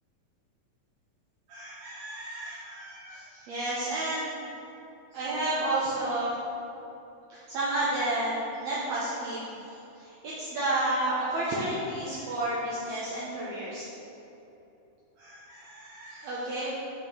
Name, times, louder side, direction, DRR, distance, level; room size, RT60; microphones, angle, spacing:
voice 1, 1.5-4.3 5.1-6.3 7.3-9.5 10.0-13.9 15.2-16.7, right 1 dB, 65° right, -8 dB, 1.9 m, -31 dB
7.4 x 4.2 x 5.3 m, 2.9 s
omnidirectional pair, 4.0 m